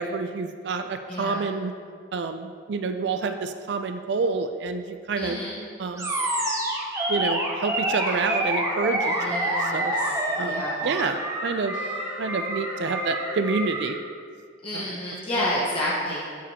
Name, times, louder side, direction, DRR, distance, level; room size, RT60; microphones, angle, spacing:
voice 1, 0.0-1.7 2.1-5.4 5.8-6.1 7.1-9.9 10.4-11.2 11.4-11.8 12.2-14.0 14.7-14.9, right 4 dB, 65° right, 7 dB, 0.4 m, -28 dB
voice 2, 1.1-1.5 5.2-5.6 9.2-10.1 10.4-10.8 14.6-16.2, left 1 dB, 30° left, -7 dB, 1.2 m, -30 dB
Animal, 6.0-13.9, right 1 dB, 15° right, 0.8 m, -27 dB
sound 1, 8.1-13.8, left 4 dB, 85° left, 0.9 m, -41 dB
12.0 x 5.1 x 2.8 m, 2.1 s
head